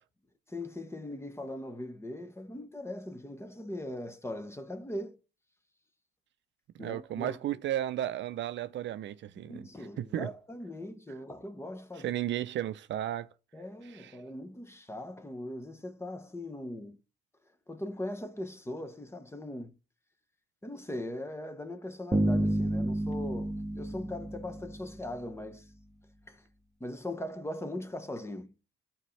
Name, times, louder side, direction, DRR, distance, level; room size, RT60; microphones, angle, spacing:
voice 1, 0.5-5.2 6.8-7.6 9.4-12.2 13.5-17.0 17.7-19.7 20.6-25.7 26.3-26.4 26.8-28.5, left 1 dB, 15° left, 0.9 m, -40 dB
voice 2, 6.7-9.7 10.0-10.3 12.0-13.3 13.9-14.1, right 12 dB, 65° right, 0.5 m, -34 dB
Bass guitar, 22.1-25.2, right 1 dB, 15° right, 1.4 m, -30 dB
12.5 x 4.4 x 3.2 m
cardioid pair, 90°, 20 cm